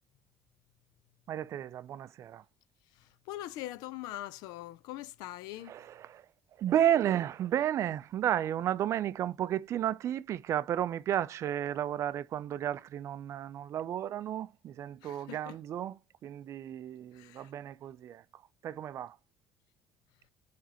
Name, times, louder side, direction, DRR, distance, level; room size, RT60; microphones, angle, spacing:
voice 1, 1.3-2.4 5.7-6.3 6.6-18.2 18.6-19.2, right 11 dB, 45° right, 0.4 m, -32 dB
voice 2, 3.0-5.8 15.0-15.6 17.1-17.5, left 14 dB, 80° left, 0.4 m, -42 dB
4.7 x 3.3 x 2.8 m
cardioid pair, 125°, 7 cm